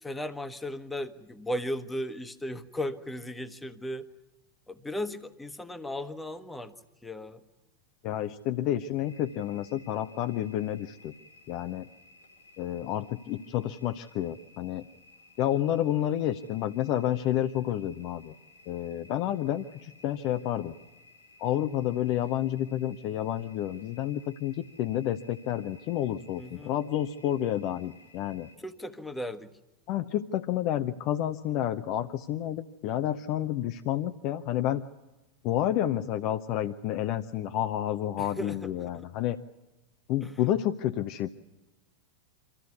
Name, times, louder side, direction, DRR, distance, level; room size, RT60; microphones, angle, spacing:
voice 1, 0.0-4.1 4.7-6.7 7.0-7.4 26.4-26.8 28.6-29.6 38.2-39.1 40.2-40.4, left 1 dB, 10° left, 11 dB, 1.3 m, -36 dB
voice 2, 8.0-11.1 11.5-11.9 12.6-14.9 15.4-18.3 18.7-20.7 21.4-28.5 29.9-34.8 35.4-39.4 40.1-41.3, left 12 dB, 45° left, 9 dB, 0.7 m, -30 dB
sound 1, 9.0-28.6, left 2 dB, 85° left, 4.1 m, -57 dB
25.0 x 15.0 x 9.6 m, 1.1 s
figure-of-eight pair, 90°, 0 cm